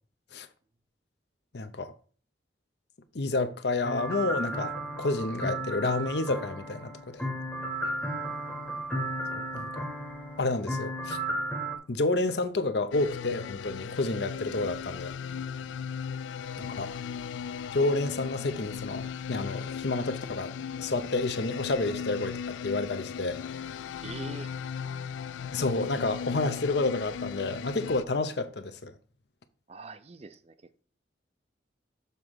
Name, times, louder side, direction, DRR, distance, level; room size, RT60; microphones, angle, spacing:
voice 1, 1.5-1.9 3.1-7.2 9.3-9.9 10.4-11.2 11.9-15.1 16.8-17.0 17.7-20.5 20.8-23.4 25.5-28.9, left 2 dB, 60° left, 0.7 m, -30 dB
sound 1, 3.8-11.8, right 1 dB, 10° left, 0.9 m, -34 dB
sound 2, 12.9-28.0, left 7 dB, 80° left, 0.3 m, -37 dB
voice 2, 24.0-24.5 29.7-30.5, right 3 dB, 35° right, 0.4 m, -44 dB
6.9 x 3.7 x 6.1 m
head